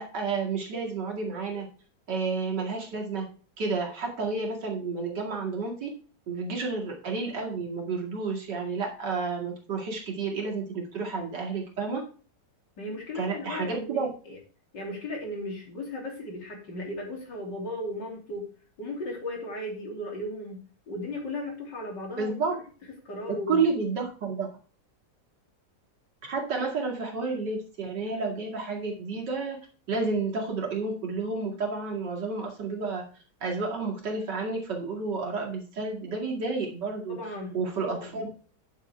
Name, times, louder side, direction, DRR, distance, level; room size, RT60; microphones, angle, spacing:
voice 1, 0.0-1.7 2.1-3.3 3.6-5.9 6.3-12.0 13.1-14.1 22.2-22.5 23.3-24.5 26.2-29.6 29.9-33.0 33.4-37.2 37.5-38.4, right 4 dB, 75° right, -1 dB, 2.9 m, -30 dB
voice 2, 12.8-14.4 14.7-18.5 18.8-22.3 23.1-23.7 37.1-38.2, left 1 dB, 90° left, 0 dB, 3.6 m, -36 dB
9.0 x 7.5 x 3.4 m, 0.39 s
omnidirectional pair, 1.9 m